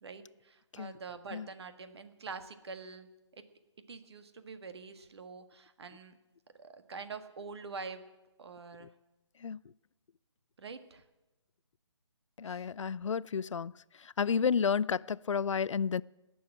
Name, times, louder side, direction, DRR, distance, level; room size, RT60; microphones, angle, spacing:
voice 1, 0.0-3.1 3.9-6.1 6.6-8.0 8.4-8.9 10.6-11.0 12.5-12.6, right 4 dB, 60° right, 1.6 m, -45 dB
voice 2, 12.4-13.7 14.2-16.0, left 6 dB, 80° left, 0.4 m, -31 dB
17.5 x 7.1 x 9.9 m
hypercardioid pair, 155°, 16 cm